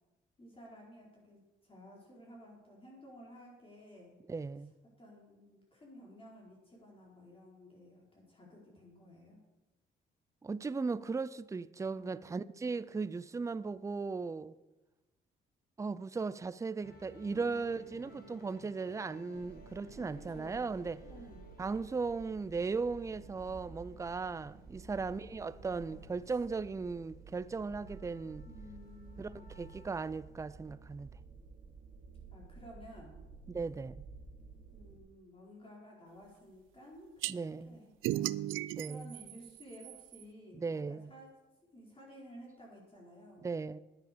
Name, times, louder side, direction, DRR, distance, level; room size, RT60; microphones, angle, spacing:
voice 1, 0.4-4.1 5.0-9.4 11.9-12.8 17.3-18.8 19.9-20.6 21.0-21.4 24.8-26.1 28.4-29.5 32.3-33.2 34.7-38.4 38.8-41.3 41.7-43.5, equal, 25° left, 4.4 m, -54 dB
voice 2, 4.3-4.7 10.4-14.5 15.8-21.0 21.6-28.5 29.2-29.3 29.6-31.1 33.5-34.1 37.3-37.8 38.7-39.1 40.5-41.1 43.4-43.8, right 4 dB, 15° right, 0.4 m, -37 dB
sound 1, 16.8-29.9, left 1 dB, 50° left, 4.5 m, -59 dB
sound 2, 19.3-35.0, right 4 dB, 40° right, 2.2 m, -53 dB
sound 3, 37.2-37.3 38.0-40.2, right 15 dB, 80° right, 0.4 m, -36 dB
10.5 x 9.0 x 6.8 m
cardioid pair, 90°, 20 cm